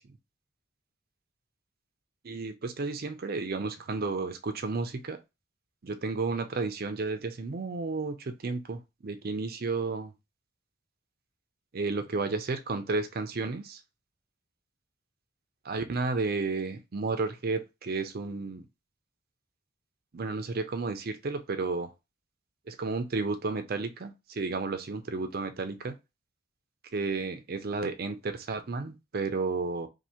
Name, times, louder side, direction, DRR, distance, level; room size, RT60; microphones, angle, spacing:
voice 1, 2.2-5.2 5.8-10.1 11.7-13.8 15.6-18.6 20.1-21.9 22.7-26.0 26.9-29.9, right 3 dB, 45° right, 0.5 m, -32 dB
2.7 x 2.7 x 4.3 m
head